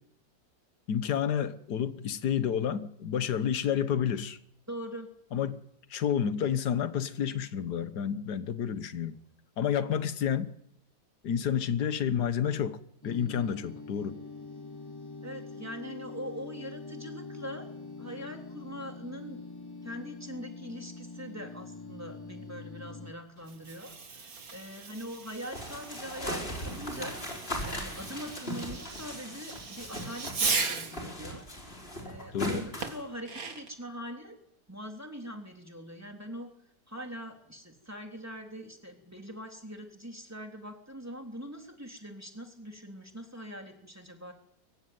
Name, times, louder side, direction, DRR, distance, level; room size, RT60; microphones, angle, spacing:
voice 1, 0.9-4.4 5.3-5.6 5.9-9.2 9.6-10.5 11.2-12.8 13.0-14.2 32.3-32.6, left 8 dB, 65° left, 1.8 m, -30 dB
voice 2, 4.7-5.1 15.2-17.7 18.0-19.4 19.8-27.2 27.6-34.4 34.7-36.5 36.9-44.3, equal, 10° right, 3.4 m, -42 dB
sound 1, 13.0-23.1, left 3 dB, 15° left, 1.1 m, -44 dB
Fireworks, 23.4-31.0 32.8-33.8, right 4 dB, 55° right, 2.4 m, -37 dB
sound 2, 25.5-30.4 30.7-33.0, equal, 30° left, 5.7 m, -38 dB
23.5 x 16.5 x 9.5 m
omnidirectional pair, 1.9 m